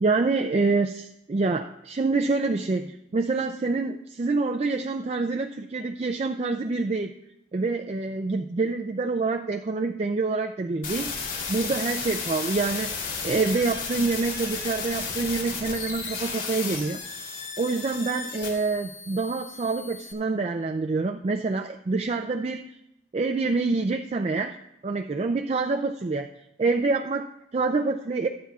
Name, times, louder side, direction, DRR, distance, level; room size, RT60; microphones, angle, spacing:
voice 1, 0.0-7.1 7.5-17.0 17.6-22.8 23.1-24.6 24.8-26.3 26.6-28.3, right 3 dB, 35° right, 5 dB, 0.4 m, -26 dB
sound 1, 10.8-20.1, left 5 dB, 85° left, 3.1 m, -34 dB
21.5 x 8.7 x 2.4 m, 0.86 s
head